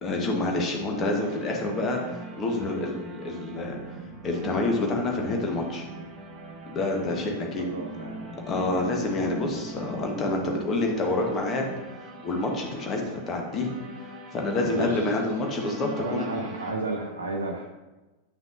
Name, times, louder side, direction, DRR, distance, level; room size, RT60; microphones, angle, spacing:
voice 1, 0.0-3.8 4.2-5.9 6.6-7.7 8.5-11.7 12.2-13.7 14.3-16.5, left 2 dB, 25° left, 1 dB, 1.4 m, -28 dB
sound 1, 0.6-16.7, right 1 dB, 35° right, 1.5 m, -43 dB
sound 2, 3.4-12.4, right 1 dB, 50° right, 1.3 m, -45 dB
voice 2, 7.3-8.2 14.6-15.2 16.0-17.6, right 3 dB, 75° right, 0 dB, 0.7 m, -33 dB
8.8 x 5.9 x 2.7 m, 1.1 s
figure-of-eight pair, 90°, 0 cm